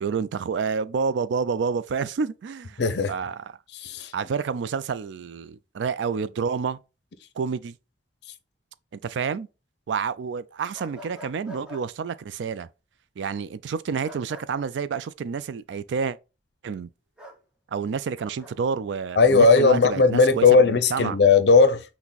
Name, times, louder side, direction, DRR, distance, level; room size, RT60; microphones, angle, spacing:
voice 1, 0.0-2.8 3.1-3.5 4.1-6.8 7.4-7.8 8.9-9.5 9.9-12.7 13.2-16.2 16.6-16.9 17.7-21.2, right 5 dB, 80° right, 0.4 m, -29 dB
voice 2, 2.8-3.1 3.7-4.1 19.2-21.8, left 4 dB, 65° left, 0.6 m, -17 dB
sound 1, 10.7-11.8 14.0-14.5 17.2-17.4 18.2-18.5, equal, 5° right, 0.9 m, -44 dB
5.9 x 2.1 x 3.9 m
head